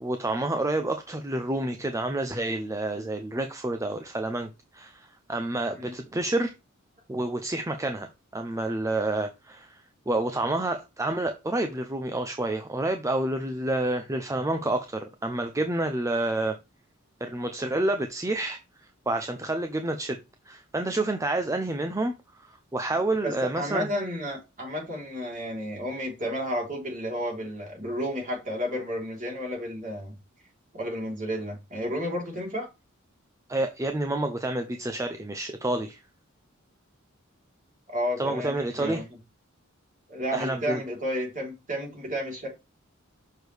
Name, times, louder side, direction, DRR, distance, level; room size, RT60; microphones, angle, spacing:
voice 1, 0.0-6.5 7.1-16.6 17.2-18.6 19.1-20.2 20.5-23.9 33.5-36.0 38.2-39.0 40.3-40.8, right 2 dB, 15° right, 0.6 m, -29 dB
voice 2, 23.2-30.1 30.7-32.7 37.9-39.0 40.1-42.5, equal, 40° right, 3.6 m, -32 dB
6.5 x 6.2 x 3.4 m
head